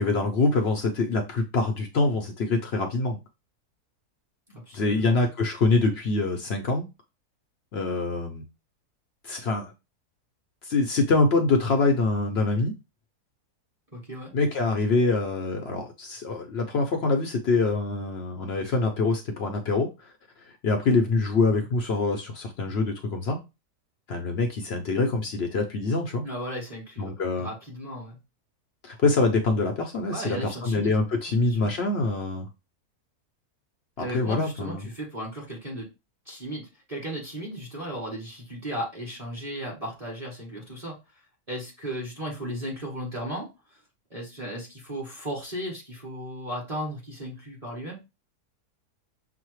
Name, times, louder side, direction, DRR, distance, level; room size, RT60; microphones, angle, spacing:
voice 1, 0.0-3.2 4.7-6.9 7.7-8.4 9.2-9.7 10.6-12.7 14.3-20.1 20.6-23.4 24.1-26.2 27.0-27.5 28.8-32.5 34.0-34.8, left 3 dB, 60° left, 0.6 m, -25 dB
voice 2, 4.5-5.2 13.9-14.3 26.2-28.2 30.1-30.9 31.4-31.7 34.0-35.9 36.2-41.0 41.5-43.5 44.1-48.0, equal, 25° right, 1.2 m, -35 dB
6.0 x 2.1 x 3.0 m
omnidirectional pair, 1.7 m